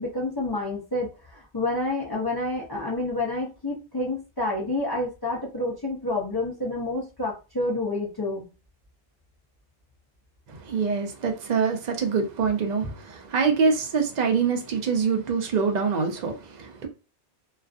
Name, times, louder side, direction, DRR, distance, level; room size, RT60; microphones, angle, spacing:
voice 1, 0.0-8.5, left 2 dB, 35° left, 0.4 m, -29 dB
voice 2, 10.5-16.9, right 5 dB, 55° right, 0.5 m, -25 dB
2.4 x 2.3 x 2.4 m
omnidirectional pair, 1.2 m